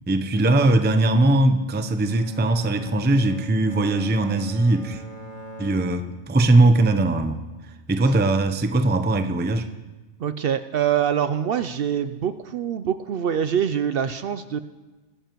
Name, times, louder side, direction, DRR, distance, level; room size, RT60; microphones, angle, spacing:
voice 1, 0.1-5.0 5.6-7.4 7.9-9.7, right 2 dB, 15° right, 9 dB, 0.4 m, -20 dB
Bowed string instrument, 1.7-6.9, equal, 35° left, 1.2 m, -42 dB
voice 2, 10.2-14.6, right 9 dB, 65° right, 11 dB, 0.7 m, -24 dB
22.0 x 10.5 x 3.0 m, 1.2 s
omnidirectional pair, 1.2 m